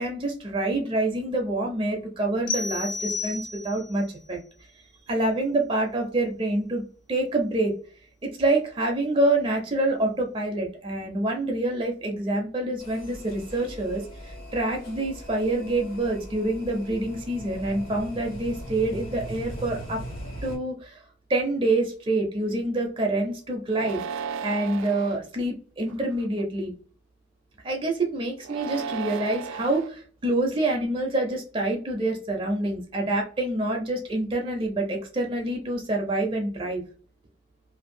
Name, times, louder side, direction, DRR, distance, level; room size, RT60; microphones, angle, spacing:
voice 1, 0.0-4.4 5.1-6.8 7.1-7.7 8.2-20.0 20.4-21.0 21.3-24.0 24.4-26.7 27.6-36.8, right 2 dB, 25° right, 1 dB, 0.4 m, -26 dB
sound 1, 2.5-4.0, left 4 dB, 45° left, 0.5 m, -31 dB
sound 2, 12.8-20.6, equal, 85° left, 1.5 m, -40 dB
sound 3, 23.7-25.2 25.9-26.4 28.4-29.9, right 6 dB, 90° right, 0.3 m, -35 dB
2.6 x 2.3 x 2.6 m, 0.41 s
head